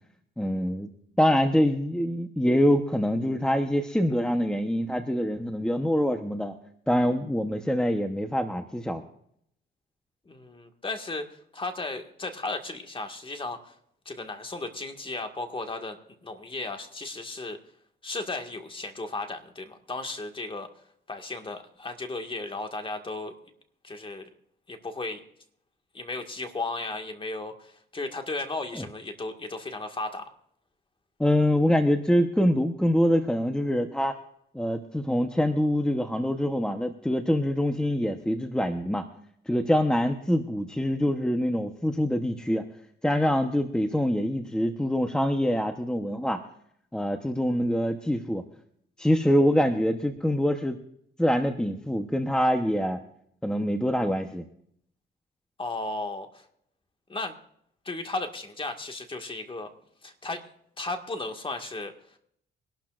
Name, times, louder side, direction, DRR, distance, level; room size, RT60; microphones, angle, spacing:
voice 1, 0.4-0.9 1.2-6.5 6.9-9.0 28.8-28.9 31.2-34.1 34.5-39.0 39.5-42.7 43.0-46.4 46.9-48.4 49.0-50.8 51.2-53.0 53.4-54.4, equal, 5° left, 6 dB, 1.0 m, -25 dB
voice 2, 10.3-11.3 11.5-13.7 14.1-17.6 18.0-20.7 21.1-23.3 23.8-24.2 24.7-25.2 25.9-30.3 55.6-56.4 57.1-57.4 57.9-59.7 60.0-60.5 60.8-61.9, left 2 dB, 25° left, 5 dB, 1.9 m, -35 dB
24.0 x 12.0 x 2.5 m, 0.69 s
cardioid pair, 90°, 20 cm